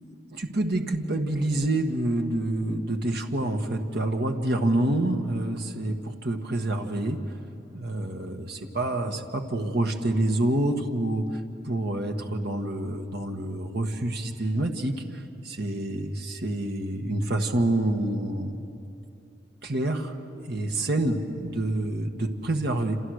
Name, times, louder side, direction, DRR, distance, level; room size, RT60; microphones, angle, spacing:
voice 1, 0.3-7.2 7.7-18.6 19.6-23.0, right 1 dB, 65° right, 4 dB, 1.6 m, -27 dB
28.0 x 27.5 x 6.5 m, 2.7 s
head